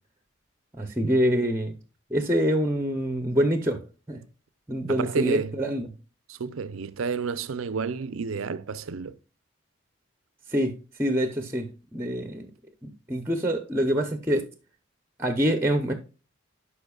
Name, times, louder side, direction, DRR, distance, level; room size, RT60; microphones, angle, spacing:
voice 1, 0.8-1.8 2.1-3.8 4.1-4.2 4.7-5.9 10.5-12.5 12.8-14.5 15.2-15.9, equal, 15° right, 0.7 m, -25 dB
voice 2, 4.9-5.6 6.3-9.2, right 5 dB, 90° right, 0.5 m, -30 dB
11.5 x 5.0 x 2.3 m
head